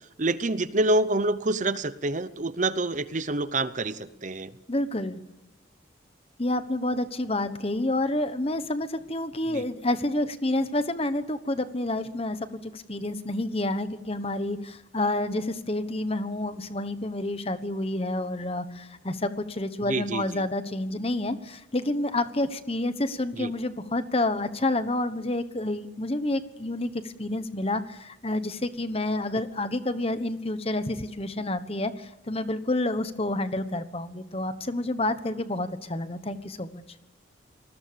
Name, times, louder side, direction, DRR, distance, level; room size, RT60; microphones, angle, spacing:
voice 1, 0.2-4.5 9.5-9.6 19.9-20.4 23.3-23.5, right 2 dB, 35° right, 14 dB, 0.8 m, -27 dB
voice 2, 4.7-5.2 6.4-36.8, left 1 dB, 30° left, 11 dB, 1.2 m, -29 dB
28.0 x 20.5 x 6.9 m, 0.89 s
head